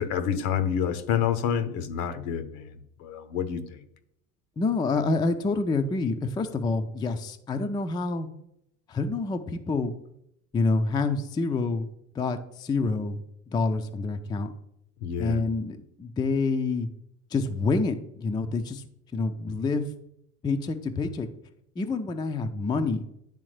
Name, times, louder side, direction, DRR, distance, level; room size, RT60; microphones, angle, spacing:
voice 1, 0.0-3.9 15.0-15.4, left 8 dB, 75° left, 12 dB, 0.8 m, -28 dB
voice 2, 4.6-8.3 8.9-9.9 10.5-11.9 12.2-13.2 13.5-14.5 15.2-16.9 17.3-18.8 19.1-19.9 20.4-21.3 21.8-23.0, left 3 dB, 10° left, 7 dB, 0.3 m, -27 dB
10.0 x 3.4 x 3.2 m, 0.76 s
supercardioid pair, 90°, 42 cm